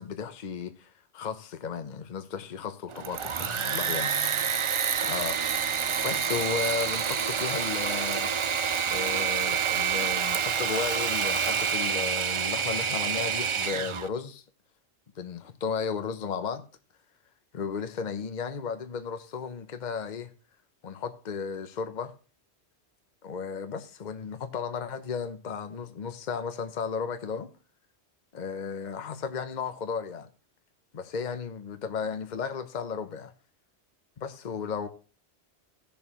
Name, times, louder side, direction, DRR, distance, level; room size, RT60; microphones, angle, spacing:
voice 1, 0.0-4.1 5.0-5.4 6.0-8.3 8.9-14.4 15.2-16.6 17.5-20.3 20.8-22.1 23.2-27.5 28.3-30.3 30.9-33.3 34.2-34.9, left 6 dB, 45° left, 0.9 m, -34 dB
Engine / Mechanisms, 2.9-14.1, right 7 dB, 50° right, 0.3 m, -28 dB
17.0 x 6.9 x 3.0 m
omnidirectional pair, 1.1 m